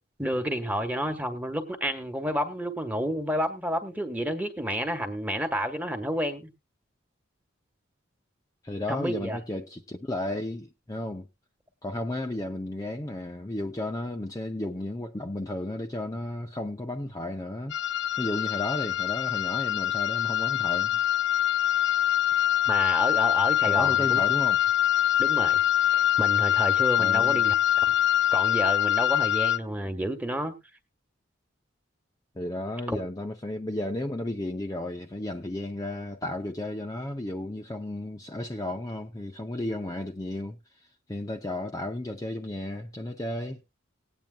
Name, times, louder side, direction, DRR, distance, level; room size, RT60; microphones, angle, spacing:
voice 1, 0.2-6.5 8.9-9.4 22.7-24.2 25.2-25.6 25.9-27.5 27.8-27.9 28.3-30.5 32.9-33.0, equal, 10° right, 1.4 m, -30 dB
voice 2, 8.6-11.3 11.8-21.0 23.7-24.6 27.0-27.4 32.3-43.6, left 1 dB, 15° left, 0.6 m, -33 dB
sound 1, 17.7-29.6, left 11 dB, 60° left, 0.6 m, -24 dB
19.5 x 8.9 x 2.3 m
head